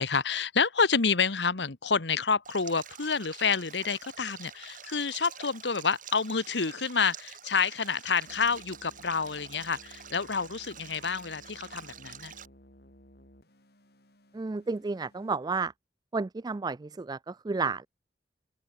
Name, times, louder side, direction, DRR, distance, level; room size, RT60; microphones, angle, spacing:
voice 1, 0.0-12.3, left 5 dB, 85° left, 1.4 m, -28 dB
Stream, 2.4-12.5, right 8 dB, 50° right, 6.4 m, -47 dB
sound 1, 8.3-15.3, left 1 dB, 65° left, 6.5 m, -57 dB
voice 2, 14.3-15.7 16.1-17.9, right 4 dB, 25° right, 0.4 m, -31 dB
open air
head